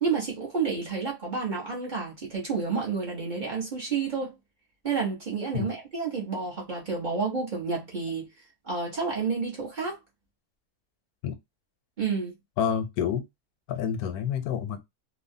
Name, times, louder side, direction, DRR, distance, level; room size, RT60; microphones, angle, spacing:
voice 1, 0.0-4.3 4.8-8.3 8.6-10.0 12.0-12.3, right 5 dB, 35° right, 1.0 m, -30 dB
voice 2, 12.6-13.2 13.7-14.8, left 8 dB, 90° left, 1.1 m, -28 dB
2.9 x 2.3 x 2.6 m
omnidirectional pair, 1.6 m